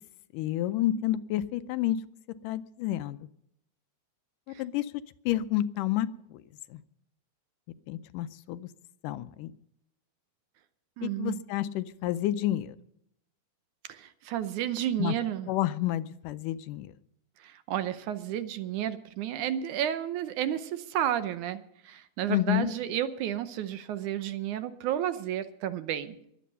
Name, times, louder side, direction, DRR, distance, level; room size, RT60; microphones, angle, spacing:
voice 1, 0.3-2.0 2.4-3.2 4.6-4.9 5.3-6.4 6.7-6.8 7.9-8.7 9.0-9.5 11.0-12.8 15.0-15.1 15.5-16.9 22.3-22.7, left 13 dB, 80° left, 13 dB, 2.2 m, -29 dB
voice 2, 11.0-11.4 13.9-15.5 17.4-26.2, right 11 dB, 75° right, 11 dB, 2.1 m, -32 dB
22.0 x 8.4 x 5.5 m, 0.74 s
omnidirectional pair, 3.8 m